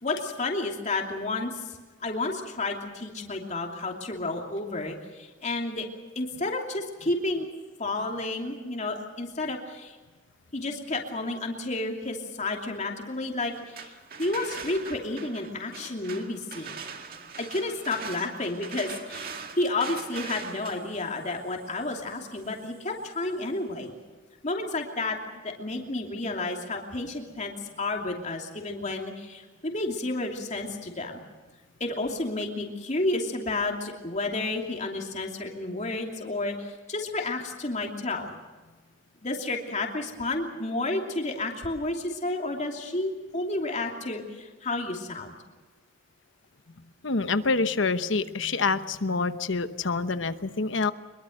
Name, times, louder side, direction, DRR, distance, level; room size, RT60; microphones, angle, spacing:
voice 1, 0.0-5.9 6.1-7.4 7.8-10.0 10.5-16.8 17.4-19.3 19.6-23.9 24.4-25.2 25.4-31.2 31.8-38.4 39.2-45.4, left 2 dB, 35° left, 1 dB, 2.8 m, -31 dB
sound 1, 13.5-23.3, right 5 dB, 50° right, 2.0 m, -42 dB
voice 2, 47.0-50.9, left 4 dB, 70° left, 11 dB, 1.0 m, -26 dB
23.5 x 22.5 x 6.6 m, 1.3 s
head